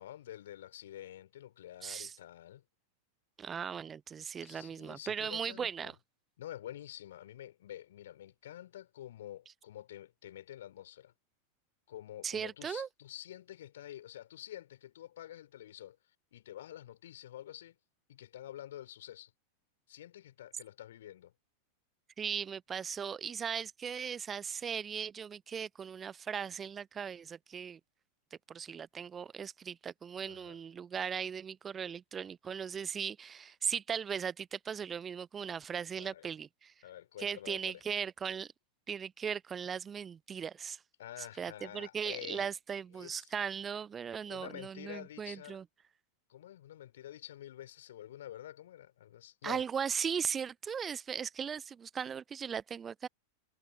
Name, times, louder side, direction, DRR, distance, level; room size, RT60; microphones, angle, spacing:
voice 1, 0.0-2.6 4.4-5.9 6.4-11.1 11.9-16.0 16.3-17.8 18.1-19.3 19.9-21.3 30.3-30.6 36.0-36.3 36.8-37.8 41.0-42.5 42.9-43.3 44.3-45.6 46.3-49.7, left 12 dB, 60° left, 3.5 m, -48 dB
voice 2, 1.8-2.1 3.4-5.9 12.2-12.9 22.2-27.8 28.5-36.7 37.2-38.5 38.9-40.8 41.4-45.6 49.4-53.1, right 7 dB, 20° right, 0.5 m, -38 dB
figure-of-eight pair, 90°, 0 cm